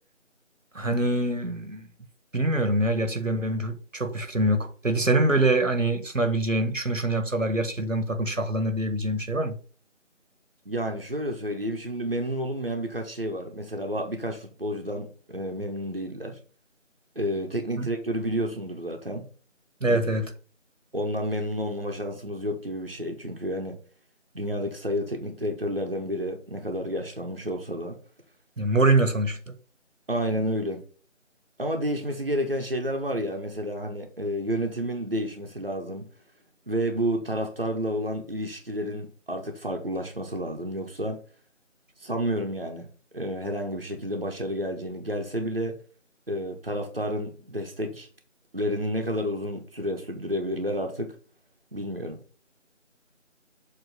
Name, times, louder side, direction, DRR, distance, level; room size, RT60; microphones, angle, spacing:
voice 1, 0.7-1.9 2.3-9.6 17.8-17.9 19.8-20.3 28.6-29.5, right 2 dB, 80° right, 1.4 m, -24 dB
voice 2, 10.7-16.4 17.1-19.3 19.9-20.1 20.9-23.8 24.3-28.0 30.1-30.8 31.6-36.1 36.7-41.2 42.0-42.9 43.1-45.8 46.3-48.1 48.5-51.1 51.7-52.2, equal, 50° right, 1.0 m, -30 dB
7.2 x 3.0 x 5.7 m
figure-of-eight pair, 180°, 38 cm